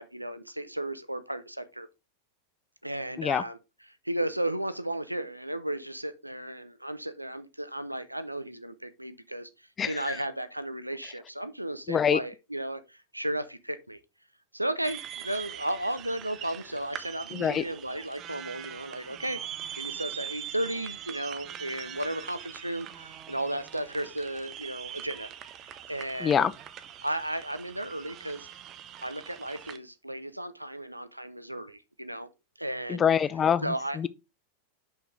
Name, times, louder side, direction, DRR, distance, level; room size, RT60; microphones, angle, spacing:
voice 1, 0.0-1.9 2.8-3.6 4.0-14.0 14.5-19.4 19.8-25.3 25.7-26.5 27.0-28.5 29.0-32.3 32.6-33.0 33.6-34.1, right 1 dB, 85° right, 0.6 m, -34 dB
voice 2, 9.8-10.2 11.9-12.2 17.3-17.6 26.2-26.5 32.9-34.1, left 7 dB, 25° left, 0.5 m, -25 dB
sound 1, 14.8-29.8, right 10 dB, 35° right, 0.7 m, -42 dB
6.3 x 5.7 x 3.6 m
figure-of-eight pair, 90°, 0 cm